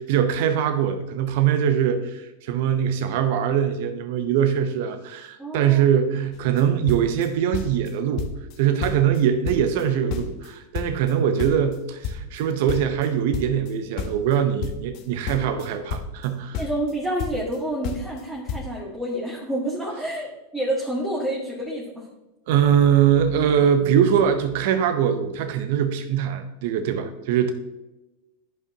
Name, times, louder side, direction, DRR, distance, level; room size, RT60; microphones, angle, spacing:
voice 1, 0.0-8.3 8.6-16.6 22.5-27.5, right 8 dB, 60° right, 8 dB, 0.7 m, -22 dB
voice 2, 5.4-5.8 16.6-22.0, right 1 dB, 5° right, -5 dB, 1.6 m, -28 dB
sound 1, 6.3-6.6 6.9-7.9 8.2-8.6 8.8-10.5 10.7-13.7 14.0-16.3 16.5-17.6 17.8-18.2 18.5-18.6, left 6 dB, 50° left, 0.9 m, -31 dB
11.0 x 5.3 x 2.8 m, 1.0 s
hypercardioid pair, 105°, 0 cm